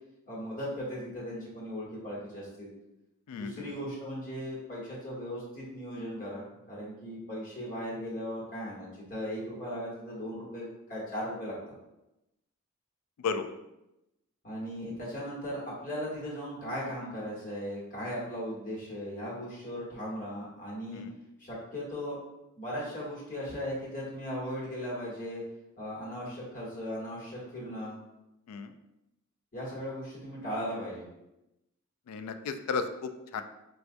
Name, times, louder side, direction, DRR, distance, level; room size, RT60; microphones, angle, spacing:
voice 1, 0.3-2.7 3.3-11.5 14.4-21.0 21.4-22.2 22.6-25.4 25.8-28.0 29.5-31.1, equal, 40° left, -5 dB, 1.2 m, -37 dB
voice 2, 3.3-3.7 13.2-13.5 20.9-21.1 28.5-28.7 32.1-33.4, left 5 dB, 85° left, 8 dB, 0.3 m, -34 dB
4.4 x 2.3 x 2.5 m, 0.90 s
head